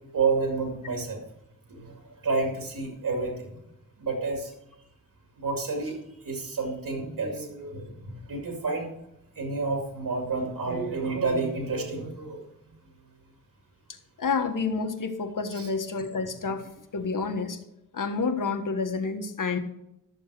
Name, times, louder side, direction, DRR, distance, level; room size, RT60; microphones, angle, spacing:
voice 1, 0.1-1.2 1.7-3.5 4.0-4.5 5.4-8.9 9.4-12.7 15.5-15.7 16.2-16.3 17.0-17.1, right 4 dB, 90° right, 1 dB, 2.5 m, -30 dB
voice 2, 14.2-16.7 16.9-17.6 17.9-19.6, left 4 dB, 70° left, 6 dB, 1.6 m, -29 dB
13.0 x 7.3 x 4.8 m, 0.84 s
cardioid pair, 65°, 33 cm